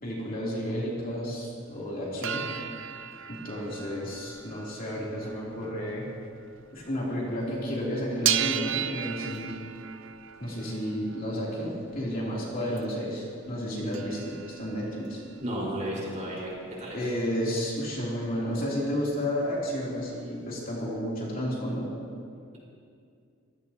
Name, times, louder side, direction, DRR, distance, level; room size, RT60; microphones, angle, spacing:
voice 1, 0.0-2.4 3.3-6.1 6.7-9.5 10.4-15.2 16.9-21.9, equal, 40° left, -5 dB, 3.2 m, -32 dB
sound 1, 1.9-7.1 7.4-13.0 13.5-13.6 13.7-17.7 17.9-18.9 19.2-19.3 19.5-20.5 21.0-21.1, right 10 dB, 60° right, 0.5 m, -36 dB
voice 2, 15.4-16.5 16.8-17.0, equal, 35° right, -5 dB, 4.7 m, -33 dB
24.0 x 16.0 x 2.9 m, 2.4 s
head